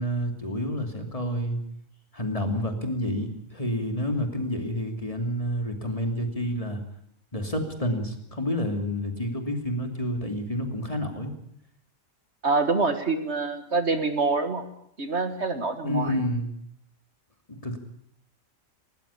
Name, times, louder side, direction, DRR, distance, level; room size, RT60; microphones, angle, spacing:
voice 1, 0.0-1.6 2.1-6.8 7.3-11.3 15.8-16.5 17.6-17.8, equal, 25° left, 5 dB, 2.8 m, -29 dB
voice 2, 12.4-14.6 15.0-16.2, right 3 dB, 55° right, 9 dB, 1.9 m, -26 dB
19.0 x 19.0 x 8.4 m, 0.71 s
omnidirectional pair, 1.4 m